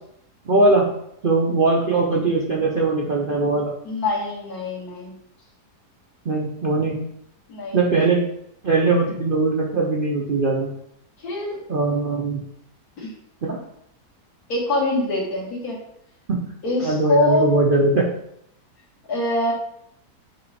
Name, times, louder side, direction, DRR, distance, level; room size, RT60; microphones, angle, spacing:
voice 1, 0.5-0.9 1.2-3.7 6.2-7.0 7.7-8.2 8.6-10.7 11.7-12.4 13.4-13.6 16.3-16.4 16.8-18.1, right 3 dB, 50° right, -3 dB, 0.7 m, -20 dB
voice 2, 3.8-5.1 7.5-7.8 11.2-11.6 13.0-13.1 14.5-15.8 16.6-17.5 19.1-19.5, left 1 dB, 60° left, -3 dB, 2.0 m, -23 dB
7.5 x 3.0 x 4.1 m, 0.73 s
omnidirectional pair, 1.8 m